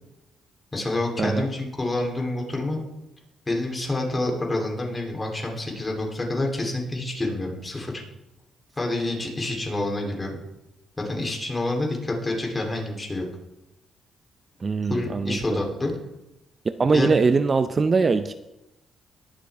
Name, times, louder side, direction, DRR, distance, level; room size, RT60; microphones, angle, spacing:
voice 1, 0.7-2.8 3.5-8.0 8.8-10.4 11.0-13.3 14.9-15.9 16.9-17.1, left 2 dB, 20° left, 0 dB, 3.4 m, -28 dB
voice 2, 14.6-15.6 16.6-18.3, right 4 dB, 35° right, 11 dB, 0.5 m, -22 dB
21.0 x 7.4 x 3.6 m, 0.93 s
cardioid pair, 90°, 0 cm